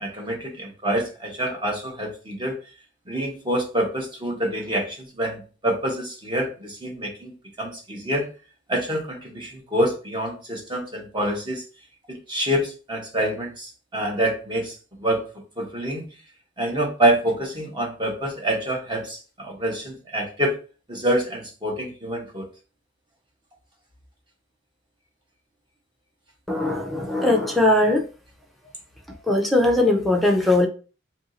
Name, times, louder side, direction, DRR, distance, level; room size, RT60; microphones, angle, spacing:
voice 1, 0.0-2.6 3.1-7.3 7.6-8.3 8.7-11.6 12.1-15.2 15.6-16.1 16.6-20.5 20.9-22.5, right 1 dB, 25° right, 0 dB, 0.9 m, -26 dB
voice 2, 26.5-28.0 29.3-30.7, left 2 dB, ahead, 1 dB, 0.5 m, -20 dB
2.8 x 2.7 x 3.9 m, 0.36 s
head